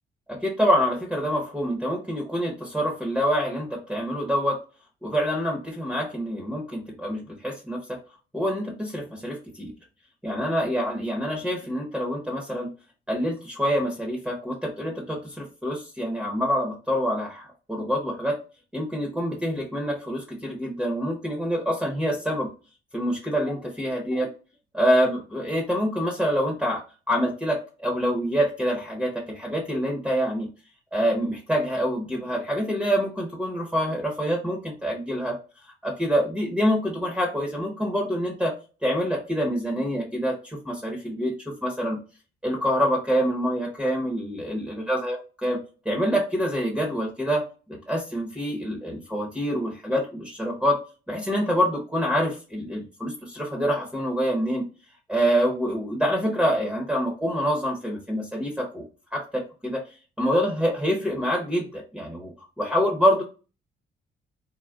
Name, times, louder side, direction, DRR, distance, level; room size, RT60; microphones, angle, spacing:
voice 1, 0.4-4.6 5.0-8.0 8.3-9.7 10.2-12.7 13.1-18.3 18.7-22.5 22.9-24.3 24.7-26.8 27.1-30.5 30.9-35.4 35.8-38.5 38.8-42.0 42.4-45.6 45.8-50.8 51.1-54.6 55.1-58.9 59.1-59.8 60.2-62.3 62.6-63.2, equal, 5° right, 0 dB, 0.8 m, -26 dB
3.6 x 2.2 x 2.2 m, 0.35 s
cardioid pair, 90°, 20 cm